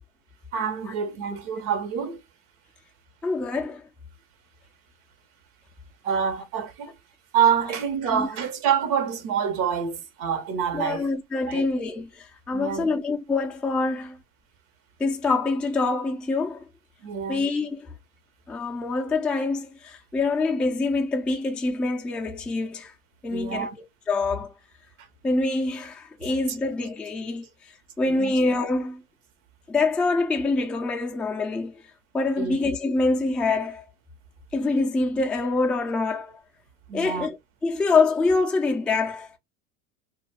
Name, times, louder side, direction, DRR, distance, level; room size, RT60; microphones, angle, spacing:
voice 1, 0.5-2.2 6.0-6.9 7.3-11.1 11.5-11.7 12.5-12.8 17.0-17.4 23.3-23.7 26.2-26.6 28.1-28.3 32.4-32.6 36.9-37.3, right 7 dB, 65° right, 1.1 m, -26 dB
voice 2, 3.2-3.8 8.1-8.3 10.7-14.2 15.0-16.6 17.3-17.9 18.5-22.9 23.2-23.7 24.1-24.5 25.2-27.5 28.0-29.0 29.7-31.8 32.1-33.8 34.5-36.4 36.9-37.4 37.6-39.4, left 3 dB, 5° left, 0.3 m, -25 dB
2.5 x 2.3 x 3.2 m
supercardioid pair, 100°, 39 cm